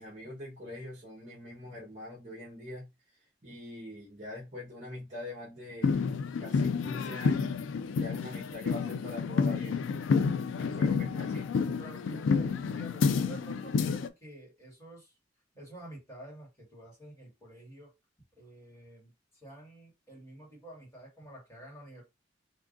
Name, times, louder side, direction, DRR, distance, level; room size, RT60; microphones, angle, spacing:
voice 1, 0.0-2.9 3.4-6.0 6.4-7.6 8.0-9.8 10.1-11.5, left 1 dB, 40° right, 1.2 m, -43 dB
sound 1, 5.8-14.1, left 5 dB, 90° left, 0.4 m, -29 dB
voice 2, 10.7-11.0 11.6-15.1 15.6-17.9 18.4-22.0, right 2 dB, 15° left, 1.9 m, -49 dB
3.5 x 2.7 x 2.5 m
head